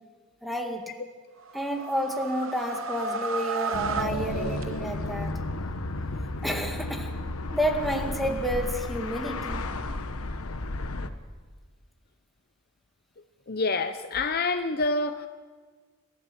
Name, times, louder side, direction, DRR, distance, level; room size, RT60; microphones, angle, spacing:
voice 1, 0.4-0.8 1.5-5.4 6.4-7.1 7.5-9.7, equal, ahead, 2 dB, 2.0 m, -30 dB
sound 1, 1.4-5.2, right 5 dB, 65° right, 1.0 m, -33 dB
sound 2, 3.7-11.1, left 2 dB, 80° left, 1.2 m, -33 dB
voice 2, 13.5-15.3, left 3 dB, 45° left, 8 dB, 0.8 m, -27 dB
26.0 x 14.5 x 7.6 m, 1.5 s
head